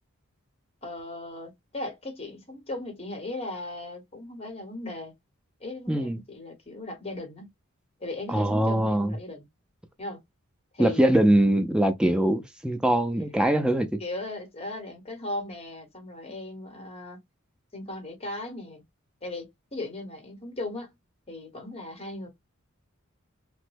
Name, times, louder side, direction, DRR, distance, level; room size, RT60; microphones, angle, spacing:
voice 1, 0.8-5.1 5.6-7.5 8.0-9.5 10.0-10.2 10.7-11.1 14.0-17.2 17.7-18.8 19.2-20.9 21.3-22.3, left 2 dB, 30° left, 1.0 m, -37 dB
voice 2, 5.9-6.2 8.3-9.2 10.8-14.0, right 1 dB, 5° right, 0.4 m, -22 dB
3.0 x 2.1 x 3.2 m
head